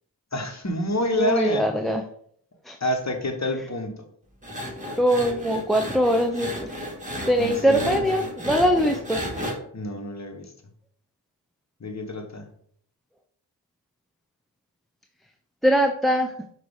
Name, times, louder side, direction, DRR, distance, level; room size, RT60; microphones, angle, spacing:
voice 1, 0.3-1.7 2.8-4.0 7.4-8.0 9.7-10.5 11.8-12.5, left 1 dB, 35° left, 4 dB, 1.0 m, -28 dB
voice 2, 1.1-2.0 2.7-2.8 5.0-6.7 7.3-9.2 15.6-16.3, equal, ahead, 3 dB, 0.4 m, -22 dB
sound 1, 4.4-9.5, equal, 15° right, 1.7 m, -33 dB
5.8 x 2.4 x 3.5 m, 0.63 s
cardioid pair, 40°, 47 cm